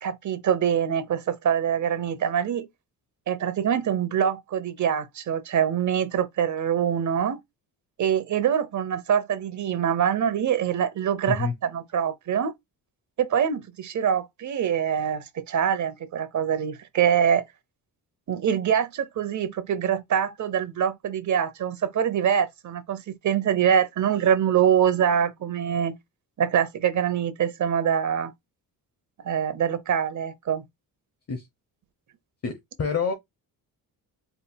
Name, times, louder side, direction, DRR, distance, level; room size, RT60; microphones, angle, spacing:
voice 1, 0.0-2.7 3.3-7.4 8.0-12.5 13.2-17.4 18.3-26.0 26.4-28.3 29.2-30.6, right 8 dB, 50° right, 0.8 m, -24 dB
voice 2, 32.4-33.1, left 5 dB, 40° left, 0.9 m, -27 dB
4.3 x 3.6 x 2.2 m
cardioid pair, 95°, 38 cm